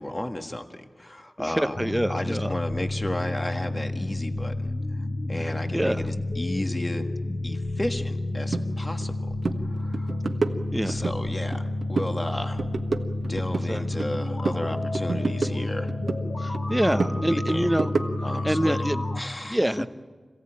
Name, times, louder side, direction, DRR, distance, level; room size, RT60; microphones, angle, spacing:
voice 1, 0.0-1.7 2.1-4.7 5.3-7.1 7.4-9.1 9.7-10.2 10.8-11.6 11.9-12.6 13.3-15.9 16.9-17.7 18.2-18.9 19.2-19.6, left 1 dB, 25° left, 5 dB, 1.6 m, -33 dB
voice 2, 1.4-2.5 5.4-6.0 10.7-11.1 13.7-14.0 16.4-17.9 18.4-19.1 19.5-19.9, right 1 dB, 10° right, 10 dB, 0.9 m, -26 dB
sound 1, 1.7-19.2, left 2 dB, 80° left, 3.0 m, -30 dB
sound 2, 8.5-8.7 9.0-9.2 9.4-9.6 9.9-11.2 11.5-12.2 12.4-14.2 14.4-16.2 16.5-18.4, right 3 dB, 85° right, 1.5 m, -29 dB
26.5 x 17.0 x 8.8 m, 1.5 s
wide cardioid pair, 80°, 0 cm